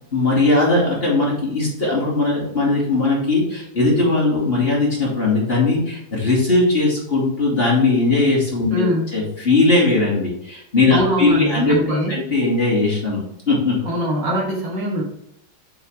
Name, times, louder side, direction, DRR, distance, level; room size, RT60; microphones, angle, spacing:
voice 1, 0.1-11.8 12.1-13.8, left 3 dB, 30° left, -5 dB, 2.4 m, -19 dB
voice 2, 8.7-9.1 10.9-12.1 13.8-15.0, equal, 60° right, -3 dB, 2.3 m, -22 dB
7.6 x 4.5 x 3.4 m, 0.77 s
omnidirectional pair, 2.2 m